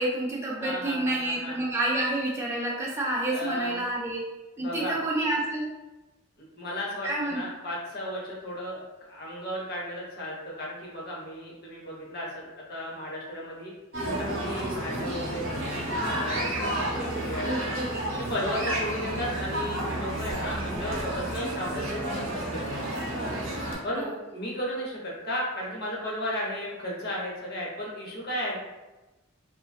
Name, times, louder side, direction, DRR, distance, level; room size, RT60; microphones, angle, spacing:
voice 1, 0.0-4.2 4.6-5.7 7.0-7.5 16.9-18.4 23.9-24.1, right 1 dB, 10° right, -4 dB, 0.4 m, -29 dB
voice 2, 0.6-1.6 3.3-3.8 4.6-5.0 6.6-13.7 14.2-17.8 18.2-22.8 23.8-24.1 24.3-28.6, equal, 45° left, -4 dB, 0.6 m, -34 dB
sound 1, 13.9-23.7, right 1 dB, 65° right, 0.6 m, -31 dB
2.5 x 2.2 x 2.3 m, 1.1 s
head